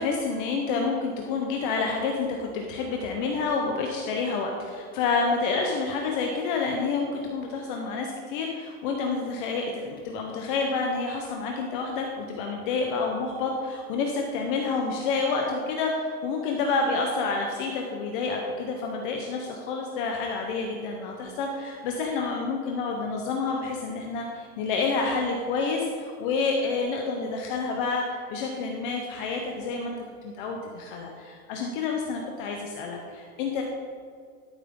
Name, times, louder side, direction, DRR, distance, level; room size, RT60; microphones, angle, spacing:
voice 1, 0.0-30.0 30.2-33.6, left 4 dB, 35° left, 1 dB, 0.9 m, -29 dB
12.5 x 7.4 x 3.7 m, 2.1 s
supercardioid pair, 165°, 44 cm